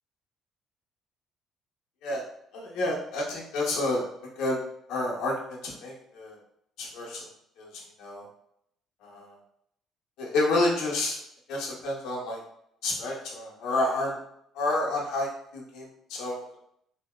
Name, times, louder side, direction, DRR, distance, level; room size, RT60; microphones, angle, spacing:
voice 1, 2.5-4.0 4.4-4.6 4.9-6.4 6.8-7.2 7.6-7.7 8.0-8.2 9.0-9.4 10.2-11.2 11.5-12.4 12.8-14.2 14.5-16.6, left 2 dB, 75° left, -2 dB, 0.7 m, -29 dB
2.6 x 2.1 x 2.2 m, 0.73 s
cardioid pair, 145°, 0 cm